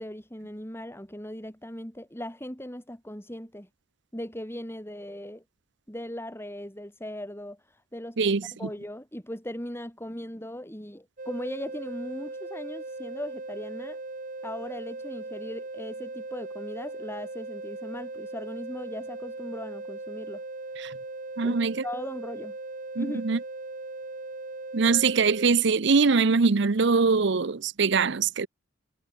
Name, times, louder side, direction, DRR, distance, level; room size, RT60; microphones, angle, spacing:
voice 1, 0.0-3.7 4.1-5.4 5.9-8.2 8.6-14.0 14.4-20.4 21.4-22.6 23.0-23.2, left 1 dB, 15° left, 5.9 m, -38 dB
sound 1, 11.2-25.5, right 2 dB, 45° right, 2.2 m, -39 dB
voice 2, 21.4-21.8 23.0-23.4 24.7-28.5, right 4 dB, 65° right, 0.7 m, -22 dB
head